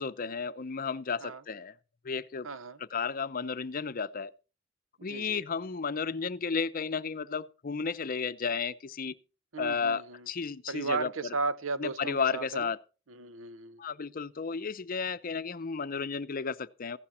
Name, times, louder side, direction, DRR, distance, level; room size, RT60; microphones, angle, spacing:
voice 1, 0.0-1.7 2.0-2.5 2.8-4.3 5.0-9.1 9.6-11.4 11.8-12.8 13.8-17.0, left 5 dB, 45° left, 0.6 m, -33 dB
voice 2, 2.4-2.8 5.1-5.4 9.5-10.3 10.7-12.7 13.1-13.8, right 3 dB, 90° right, 0.8 m, -35 dB
15.0 x 11.0 x 4.2 m
head